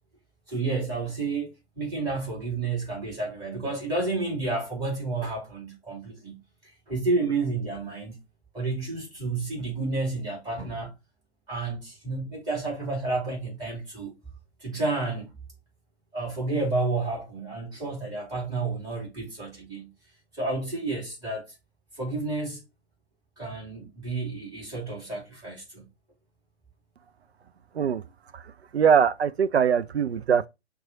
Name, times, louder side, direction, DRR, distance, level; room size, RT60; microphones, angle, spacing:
voice 1, 0.5-8.2 8.5-10.9 11.5-14.2 14.6-15.3 16.1-19.9 20.3-21.5 22.0-22.6 23.4-25.9, right 3 dB, 10° right, 2.3 m, -30 dB
voice 2, 28.3-30.5, right 7 dB, 70° right, 0.5 m, -22 dB
6.0 x 2.3 x 3.8 m
figure-of-eight pair, 125°, 33 cm